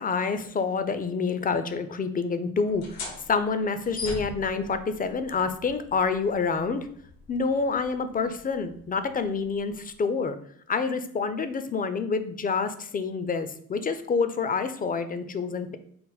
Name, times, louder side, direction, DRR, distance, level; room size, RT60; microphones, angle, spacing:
voice 1, 0.0-3.0 3.3-6.9 7.3-10.4 10.7-15.8, left 5 dB, 25° left, 10 dB, 0.3 m, -27 dB
sound 1, 2.6-9.9, left 3 dB, 90° left, 0.9 m, -43 dB
4.0 x 2.1 x 4.0 m, 0.63 s
cardioid pair, 85°, 35 cm